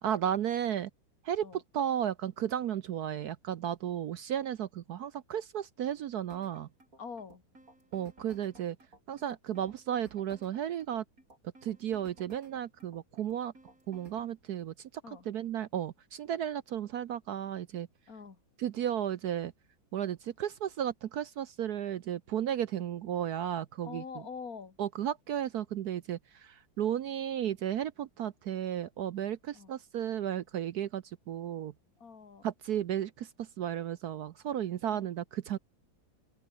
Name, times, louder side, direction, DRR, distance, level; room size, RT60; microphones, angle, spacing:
voice 1, 0.0-0.9 1.2-6.7 7.9-8.8 9.1-11.0 11.6-13.5 13.9-14.7 15.3-17.9 18.6-19.5 19.9-24.0 24.8-31.7 32.4-35.6, right 10 dB, 65° right, 1.0 m, -34 dB
sound 1, 6.3-14.3, right 2 dB, 40° right, 7.4 m, -57 dB
voice 2, 7.0-7.4 15.0-15.3 18.1-18.4 23.8-24.8 29.5-29.7 32.0-32.5 34.9-35.0, left 5 dB, 45° left, 3.2 m, -45 dB
omnidirectional pair, 2.2 m